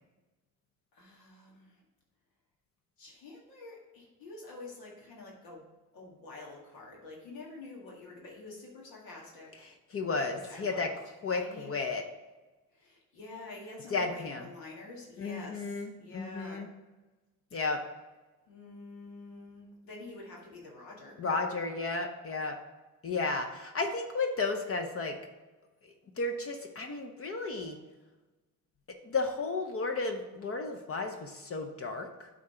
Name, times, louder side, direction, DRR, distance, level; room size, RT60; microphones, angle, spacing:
voice 1, 0.9-1.8 3.0-9.7 10.3-11.0 11.4-11.7 12.7-16.7 18.5-21.2, left 2 dB, 80° left, -3 dB, 1.9 m, -48 dB
voice 2, 9.6-10.9 11.2-12.0 13.9-14.5 15.2-16.7 17.5-17.8 21.2-22.6 23.0-25.2 25.8-27.8 29.0-32.3, left 3 dB, 40° left, 5 dB, 0.8 m, -33 dB
8.5 x 3.9 x 4.4 m, 1.2 s
cardioid pair, 90°, 36 cm